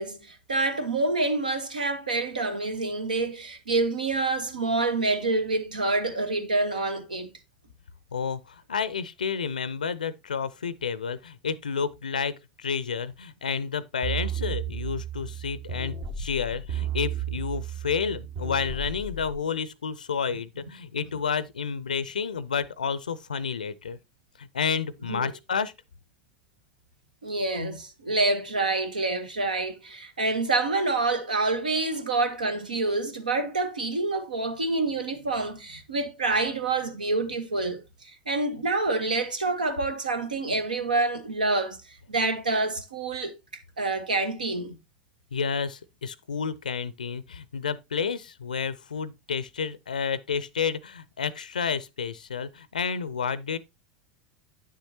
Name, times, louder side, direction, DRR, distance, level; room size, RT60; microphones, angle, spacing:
voice 1, 0.0-7.3 25.1-25.3 27.2-43.3 43.8-44.8, right 3 dB, 80° right, 1.3 m, -27 dB
voice 2, 8.1-24.0 24.4-25.7 45.3-53.6, left 6 dB, 75° left, 0.5 m, -30 dB
sound 1, 14.0-19.4, right 7 dB, 50° right, 1.5 m, -33 dB
9.1 x 7.3 x 2.8 m
figure-of-eight pair, 80°, 4 cm